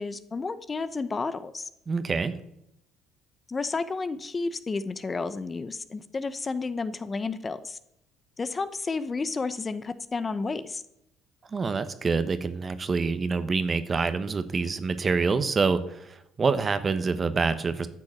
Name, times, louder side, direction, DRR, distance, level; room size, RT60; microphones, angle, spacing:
voice 1, 0.0-1.7 3.5-7.8 8.4-10.8, left 4 dB, 30° left, 13 dB, 0.8 m, -31 dB
voice 2, 1.9-2.4 11.5-17.9, right 4 dB, 35° right, 12 dB, 1.1 m, -26 dB
11.0 x 6.2 x 8.7 m, 0.80 s
supercardioid pair, 70°, 0 cm